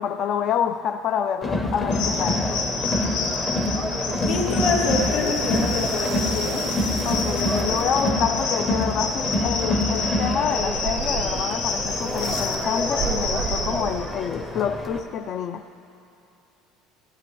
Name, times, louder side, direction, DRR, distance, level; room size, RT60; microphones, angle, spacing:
voice 1, 0.0-2.4 7.1-15.6, left 8 dB, 35° left, 7 dB, 0.3 m, -27 dB
Crowd, 1.4-15.0, left 1 dB, 15° left, 0.7 m, -27 dB
sound 1, 1.9-13.7, left 4 dB, 80° left, 2.9 m, -29 dB
sound 2, 3.9-14.3, right 10 dB, 40° right, 0.4 m, -36 dB
voice 2, 4.3-6.6, left 3 dB, 50° left, -1 dB, 2.0 m, -26 dB
17.5 x 15.0 x 3.0 m, 2.7 s
cardioid pair, 180°, 0 cm